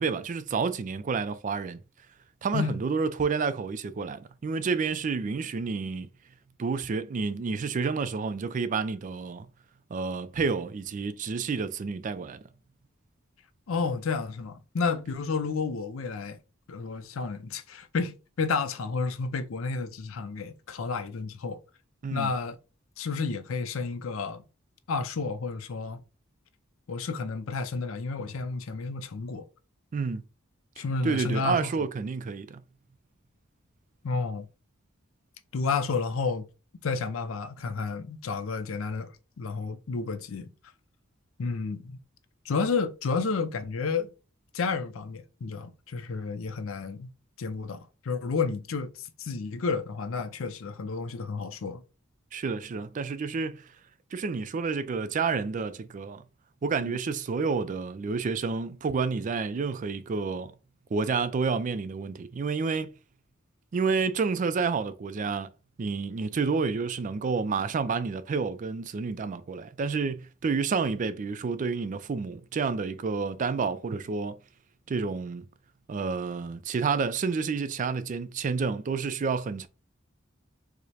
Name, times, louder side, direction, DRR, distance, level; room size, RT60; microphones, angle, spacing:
voice 1, 0.0-1.8 2.4-6.1 6.6-9.5 9.9-12.4 22.0-22.3 29.9-30.2 30.8-32.6 52.3-53.7 54.1-56.2 56.6-60.5 60.9-62.9 63.7-65.5 65.8-74.4 74.9-75.4 75.9-79.7, right 5 dB, 40° right, 0.3 m, -29 dB
voice 2, 13.7-16.4 16.7-21.6 22.1-22.6 23.0-24.4 24.9-26.0 26.9-29.5 30.8-31.6 34.0-34.5 35.5-36.5 36.8-40.5 41.4-42.0 42.5-44.1 44.5-47.1 47.4-47.8 48.0-51.8 56.9-57.0, left 4 dB, 85° left, 0.5 m, -31 dB
4.8 x 2.1 x 2.8 m
head